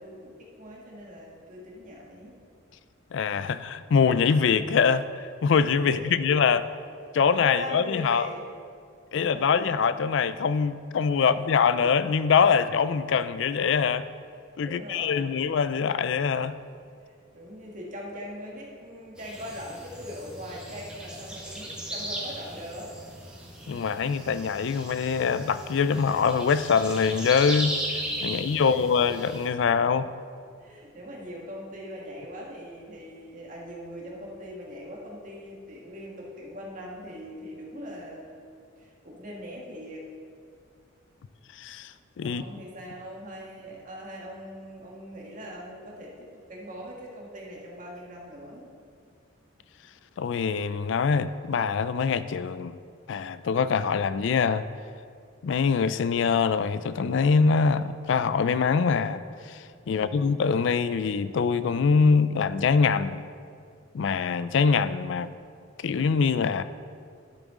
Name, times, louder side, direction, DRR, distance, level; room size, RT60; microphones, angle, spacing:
voice 1, 0.0-2.4 5.8-6.3 7.3-8.4 9.1-9.8 11.1-11.7 14.6-15.5 17.0-22.9 28.2-29.2 30.6-40.0 42.2-48.7 59.8-60.3, equal, 40° right, -3 dB, 1.6 m, -41 dB
voice 2, 3.1-6.6 7.1-8.3 9.1-14.0 14.6-16.6 23.7-27.8 28.2-30.1 41.5-42.5 50.2-52.8 53.1-54.6 55.4-63.3 63.9-65.3 65.8-66.6, left 5 dB, 65° left, 14 dB, 0.4 m, -24 dB
sound 1, 19.2-29.5, right 1 dB, 5° right, 1.2 m, -37 dB
11.5 x 7.0 x 3.7 m, 2.2 s
head